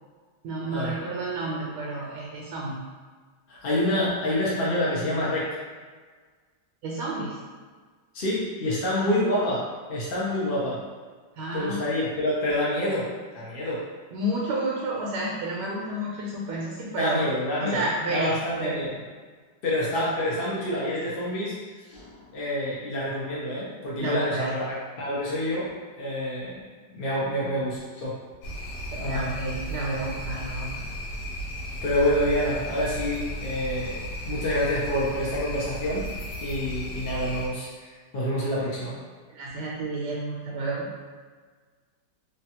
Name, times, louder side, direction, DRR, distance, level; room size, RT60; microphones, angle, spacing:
voice 1, 0.4-2.8 6.8-7.4 9.0-9.1 11.4-11.8 14.1-17.2 17.6-18.3 18.6-18.8 19.9-20.0 24.0-24.5 28.9-30.9 39.3-40.9, right 2 dB, 75° right, -4 dB, 1.2 m, -30 dB
voice 2, 3.5-5.5 8.1-9.6 9.9-10.8 11.5-13.1 13.3-13.8 16.9-19.0 19.6-21.5 21.9-25.7 26.0-26.6 26.9-28.1 29.0-29.4 31.8-36.0 36.4-39.0, left 1 dB, 65° left, -7 dB, 0.5 m, -27 dB
sound 1, 28.4-37.5, equal, 80° left, 1.3 m, -35 dB
3.1 x 2.3 x 2.8 m, 1.5 s
omnidirectional pair, 1.9 m